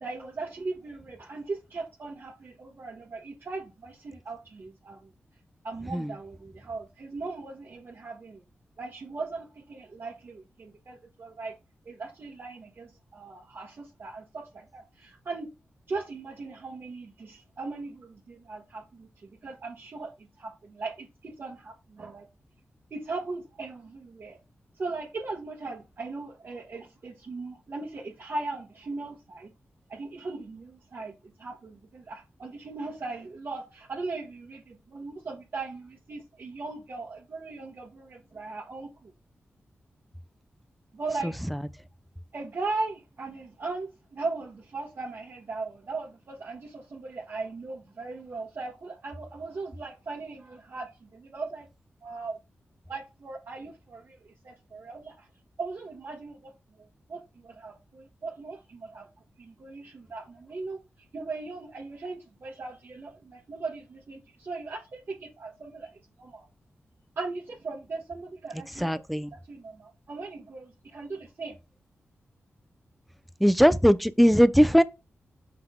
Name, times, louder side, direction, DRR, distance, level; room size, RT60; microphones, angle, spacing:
voice 1, 0.0-5.1 5.6-8.4 8.8-11.5 11.8-15.5 15.9-20.1 20.4-22.2 22.9-24.4 24.8-29.5 29.9-31.1 31.4-39.1 40.9-41.4 42.3-51.7 52.0-52.4 52.9-55.3 55.6-56.5 57.1-59.1 59.4-60.8 61.1-65.9 66.2-66.5 67.2-68.9 69.5-71.6, right 3 dB, 55° right, 1.4 m, -38 dB
voice 2, 41.2-41.6 68.5-69.3 73.4-74.8, equal, ahead, 0.5 m, -21 dB
7.4 x 5.8 x 2.2 m
wide cardioid pair, 105°, 4 cm